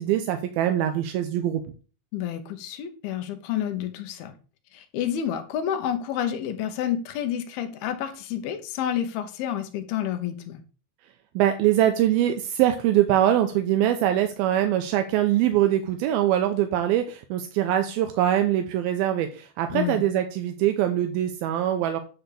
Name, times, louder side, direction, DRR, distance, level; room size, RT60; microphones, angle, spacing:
voice 1, 0.0-1.6 11.4-22.0, right 12 dB, 80° right, 6 dB, 2.5 m, -23 dB
voice 2, 2.1-4.3 4.7-10.6 19.7-20.0, left 10 dB, 85° left, 7 dB, 2.9 m, -29 dB
10.0 x 3.5 x 6.7 m, 0.37 s
omnidirectional pair, 4.3 m